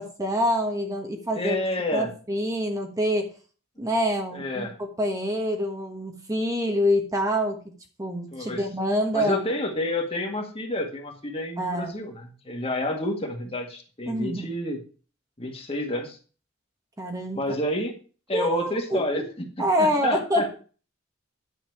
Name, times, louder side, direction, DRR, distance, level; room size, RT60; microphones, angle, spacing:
voice 1, 0.0-1.6 1.9-3.3 3.8-4.7 5.0-7.6 8.0-9.4 11.6-11.9 14.1-14.5 17.0-17.5 18.3-19.3 19.6-20.6, equal, 15° right, 3 dB, 1.3 m, -26 dB
voice 2, 1.3-2.1 4.3-4.7 8.3-8.6 9.1-14.8 15.4-16.2 17.3-17.9 18.3-19.2 19.8-20.6, left 1 dB, 30° left, 3 dB, 1.9 m, -29 dB
10.5 x 6.5 x 4.8 m, 0.37 s
head